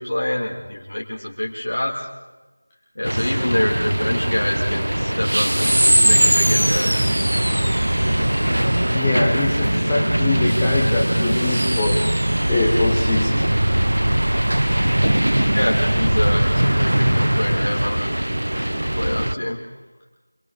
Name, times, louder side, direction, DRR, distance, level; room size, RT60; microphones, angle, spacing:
voice 1, 0.0-1.9 3.0-6.9 15.5-18.1 18.8-19.6, left 1 dB, 60° left, -4 dB, 3.0 m, -26 dB
sound 1, 3.0-19.3, right 1 dB, 90° right, 0.7 m, -20 dB
voice 2, 8.9-12.2 12.5-13.7 18.6-18.8, left 2 dB, 5° left, -4 dB, 0.9 m, -24 dB
26.5 x 22.0 x 5.0 m, 1.2 s
figure-of-eight pair, 180°, 0 cm